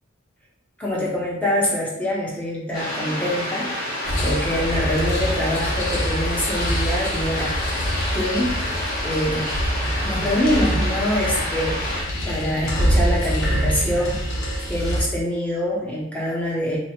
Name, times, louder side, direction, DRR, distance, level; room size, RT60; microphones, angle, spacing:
voice 1, 0.8-3.9 4.2-8.5 9.0-9.4 9.8-14.4 14.7-16.8, equal, 5° left, -5 dB, 0.8 m, -25 dB
sound 1, 2.7-12.0, left 1 dB, 45° left, 1.3 m, -29 dB
sound 2, 4.0-15.0, equal, 75° left, 0.9 m, -25 dB
3.0 x 2.2 x 4.2 m, 0.80 s
head